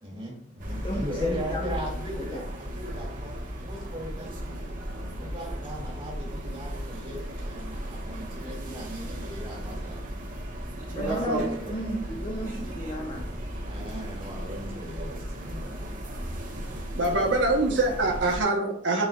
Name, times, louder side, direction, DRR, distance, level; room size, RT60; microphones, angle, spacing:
voice 1, 0.0-3.4 3.6-4.6 5.2-10.1 10.9-11.8 13.6-15.7 17.1-17.3, equal, 30° right, -3 dB, 2.1 m, -38 dB
sound 1, 0.6-18.4, equal, 45° right, 1.1 m, -36 dB
voice 2, 0.8-1.6 2.3-2.4 10.9-13.5, equal, 30° left, 0 dB, 0.7 m, -33 dB
voice 3, 11.0-11.5 16.6-16.7 16.9-19.1, right 2 dB, 80° right, 0 dB, 0.9 m, -25 dB
9.2 x 4.6 x 2.3 m, 0.63 s
head